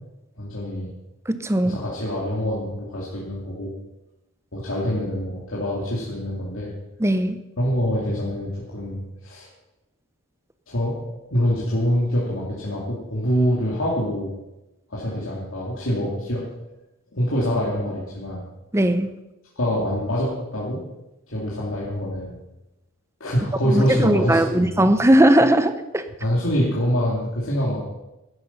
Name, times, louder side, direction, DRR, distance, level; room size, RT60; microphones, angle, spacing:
voice 1, 0.4-0.9 1.6-3.7 4.5-6.7 7.6-9.5 10.7-14.3 14.9-16.4 17.1-18.4 19.6-20.8 21.3-22.4 23.2-24.8 26.2-27.8, equal, 65° left, -6 dB, 2.8 m, -25 dB
voice 2, 1.3-1.8 7.0-7.4 18.7-19.1 23.7-26.0, right 1 dB, 15° right, 10 dB, 0.8 m, -18 dB
13.0 x 10.5 x 5.5 m, 0.98 s
head